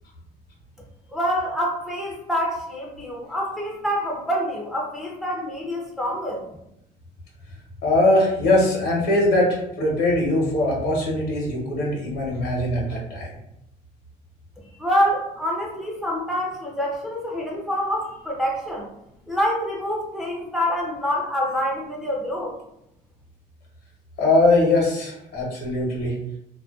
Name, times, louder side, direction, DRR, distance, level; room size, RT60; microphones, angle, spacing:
voice 1, 1.1-6.4 14.8-18.9 19.3-22.5, equal, ahead, -3 dB, 0.5 m, -26 dB
voice 2, 7.8-13.3 24.2-26.1, left 2 dB, 75° left, -2 dB, 1.0 m, -21 dB
2.4 x 2.2 x 2.3 m, 0.81 s
cardioid pair, 110°, 17 cm